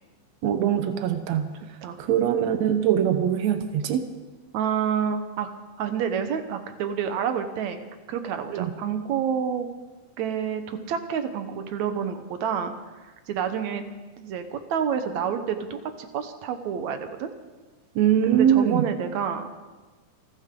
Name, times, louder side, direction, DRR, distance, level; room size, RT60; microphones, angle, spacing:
voice 1, 0.4-1.5 2.0-4.0 8.5-8.7 17.9-18.8, right 9 dB, 85° right, 8 dB, 1.5 m, -22 dB
voice 2, 4.5-5.5 5.8-7.8 8.1-9.7 10.2-12.7 13.3-13.8 14.2-17.3 18.3-19.5, right 7 dB, 70° right, 8 dB, 1.8 m, -28 dB
28.5 x 12.5 x 3.8 m, 1.3 s
omnidirectional pair, 4.5 m